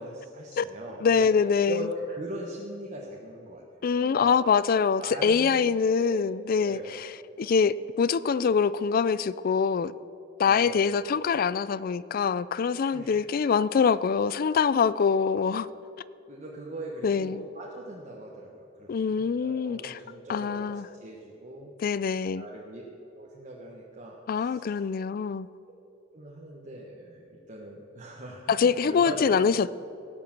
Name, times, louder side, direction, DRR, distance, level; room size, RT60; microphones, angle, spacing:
voice 1, 0.0-1.3 1.7-3.6 4.0-4.4 5.0-5.6 5.9-6.2 6.6-6.9 10.5-10.9 12.8-13.2 14.8-14.9 16.3-20.7 21.0-21.7 22.3-22.8 23.1-24.8 26.1-29.3, right 1 dB, 40° right, -3 dB, 1.3 m, -40 dB
voice 2, 1.0-1.9 3.8-7.1 7.4-9.9 10.4-15.7 17.0-17.4 18.9-20.0 20.3-20.9 21.8-22.5 24.3-25.5 28.5-29.8, left 6 dB, 50° left, 18 dB, 0.4 m, -24 dB
17.5 x 6.8 x 7.4 m, 2.7 s
head